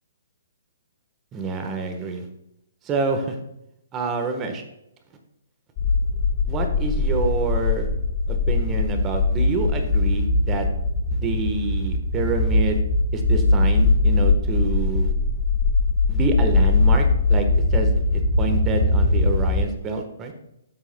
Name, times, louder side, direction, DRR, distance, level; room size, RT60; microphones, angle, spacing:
voice 1, 1.3-2.3 2.8-3.4 3.9-4.6 6.5-7.9 8.3-10.7 11.1-12.8 13.1-15.1 16.1-20.3, right 3 dB, 20° right, 5 dB, 1.2 m, -27 dB
sound 1, 5.8-19.7, left 2 dB, 30° left, 1.5 m, -21 dB
12.5 x 7.7 x 2.3 m, 0.83 s
hypercardioid pair, 140°, 0 cm